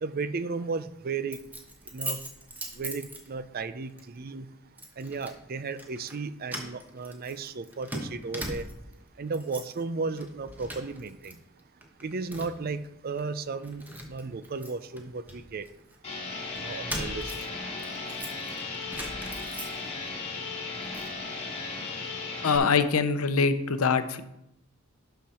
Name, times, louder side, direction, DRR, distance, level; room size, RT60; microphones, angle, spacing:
voice 1, 0.0-1.4 1.9-2.2 2.8-4.5 5.0-8.7 9.2-11.4 12.0-15.7 16.6-17.5, right 4 dB, 45° right, 13 dB, 0.5 m, -34 dB
Keys jangling, 1.3-3.6 4.0-4.2 4.8-5.4 5.7-6.2 6.5-9.0 9.3-9.8 10.1-11.3 11.6-12.7 13.2-13.3 13.6-16.0 16.6-20.1 20.5-21.1, right 1 dB, 10° right, 1.1 m, -40 dB
sound 1, 16.0-22.6, left 4 dB, 30° left, 2.1 m, -36 dB
voice 2, 22.4-24.2, left 5 dB, 85° left, 11 dB, 0.7 m, -24 dB
11.5 x 5.7 x 4.3 m, 0.86 s
head